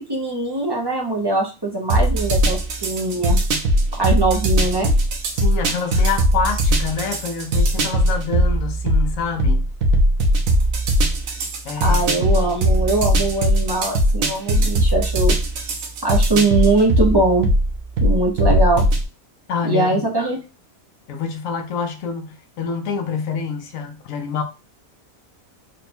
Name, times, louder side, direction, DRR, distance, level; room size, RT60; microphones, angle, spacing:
voice 1, 0.0-3.4 4.0-4.9 11.8-15.4 16.0-17.5 18.0-18.8 19.6-20.4, right 2 dB, 30° right, 0.4 m, -21 dB
sound 1, 1.9-19.0, right 1 dB, 70° right, 1.2 m, -19 dB
voice 2, 5.3-9.7 11.6-12.2 19.5-20.0 21.1-24.4, left 6 dB, 70° left, 1.1 m, -26 dB
3.7 x 2.2 x 4.2 m
omnidirectional pair, 1.5 m